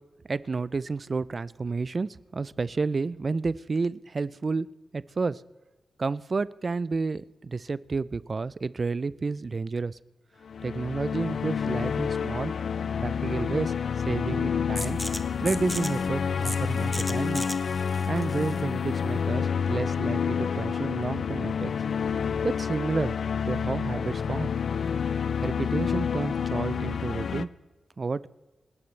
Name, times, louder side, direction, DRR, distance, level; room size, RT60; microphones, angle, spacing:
voice 1, 0.3-4.7 4.9-5.4 6.0-10.0 10.6-12.5 13.0-13.7 14.1-15.0 15.4-17.5 18.1-21.7 22.4-23.2 23.5-24.5 25.4-27.5 28.0-28.3, right 4 dB, 45° right, 19 dB, 0.4 m, -30 dB
sound 1, 10.5-27.5, left 7 dB, 75° left, 0.4 m, -29 dB
sound 2, 14.8-20.2, left 1 dB, 5° left, 1.0 m, -38 dB
29.0 x 12.0 x 3.3 m, 1.2 s
cardioid pair, 65°, 0 cm